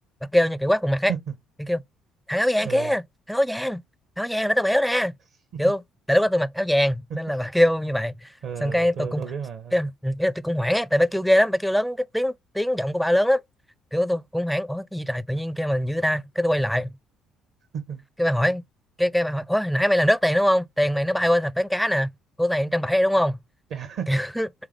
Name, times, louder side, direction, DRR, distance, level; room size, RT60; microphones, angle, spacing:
voice 1, 0.3-1.1 1.6-1.8 2.3-3.0 3.3-3.8 4.2-5.2 5.6-5.8 6.1-8.3 8.6-9.2 9.7-13.4 13.9-16.9 18.2-18.6 19.0-22.1 22.4-23.4 24.1-24.5, equal, ahead, 0.4 m, -22 dB
voice 2, 2.6-2.9 5.5-5.6 7.1-7.2 8.4-9.7 17.7-18.0 23.7-24.1, right 7 dB, 55° right, 0.8 m, -33 dB
4.7 x 3.5 x 3.2 m
figure-of-eight pair, 50°, 0 cm